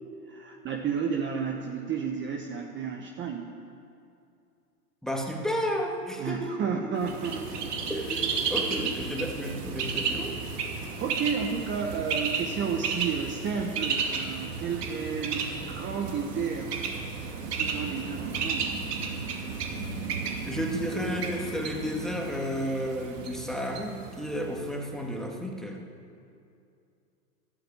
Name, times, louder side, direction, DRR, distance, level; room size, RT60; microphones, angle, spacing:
voice 1, 0.3-3.5 6.2-7.9 8.8-8.9 11.0-16.7 17.4-18.7, right 6 dB, 25° right, 2 dB, 1.1 m, -32 dB
voice 2, 5.0-7.0 7.9-10.4 20.5-25.8, equal, ahead, 0 dB, 1.8 m, -32 dB
Bird, 7.0-24.8, right 5 dB, 75° right, 2.6 m, -33 dB
12.0 x 11.5 x 8.7 m, 2.5 s
hypercardioid pair, 115°, 48 cm